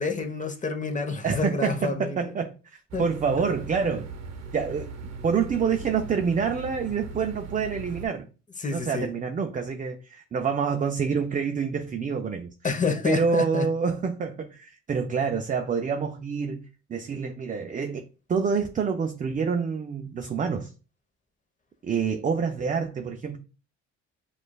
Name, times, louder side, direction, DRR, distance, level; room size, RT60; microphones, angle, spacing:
voice 1, 0.0-2.3 2.9-3.0 8.6-9.1 12.6-13.7, left 4 dB, 25° left, 0.9 m, -28 dB
voice 2, 1.2-4.1 4.5-4.9 5.2-8.3 8.7-12.5 13.0-18.0 18.3-20.7 21.8-23.4, right 6 dB, 25° right, 0.4 m, -27 dB
sound 1, 2.9-8.1, right 4 dB, 60° right, 0.8 m, -39 dB
6.5 x 2.5 x 2.3 m
cardioid pair, 90°, 30 cm